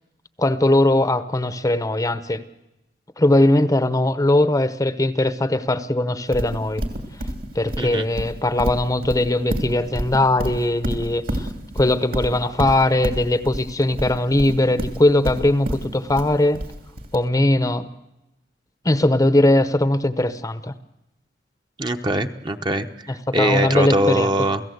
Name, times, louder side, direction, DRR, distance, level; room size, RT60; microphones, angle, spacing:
voice 1, 0.4-2.4 3.2-6.8 7.5-11.5 11.7-16.6 17.1-17.9 18.8-20.7 23.1-24.3, left 1 dB, 20° left, 12 dB, 0.8 m, -20 dB
Livestock farm animals working animals, 6.3-17.1, equal, 55° right, 2.9 m, -28 dB
voice 2, 21.8-24.6, right 1 dB, 25° right, 7 dB, 0.9 m, -22 dB
28.5 x 17.0 x 8.0 m, 0.92 s
head